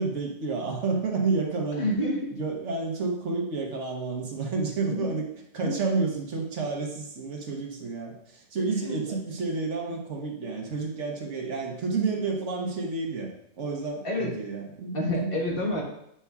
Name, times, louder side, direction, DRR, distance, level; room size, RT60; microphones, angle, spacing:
voice 1, 0.0-1.9 2.3-5.2 5.5-13.3 13.6-15.3, right 4 dB, 80° right, 0 dB, 1.4 m, -30 dB
voice 2, 1.8-2.3 4.9-5.1 5.6-5.7 8.8-9.2 14.0-14.3 14.9-15.8, left 1 dB, 50° left, -1 dB, 1.4 m, -28 dB
8.6 x 5.5 x 2.3 m, 0.74 s
omnidirectional pair, 1.2 m